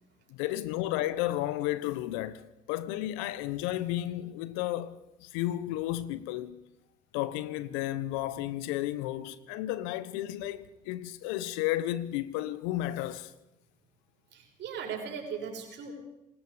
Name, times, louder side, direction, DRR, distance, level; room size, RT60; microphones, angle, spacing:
voice 1, 0.3-2.4 2.7-6.6 7.1-13.3, left 14 dB, 75° left, 1.3 m, -33 dB
voice 2, 14.3-15.9, right 6 dB, 60° right, 6.6 m, -38 dB
27.5 x 20.0 x 5.2 m
hypercardioid pair, 55°, 20 cm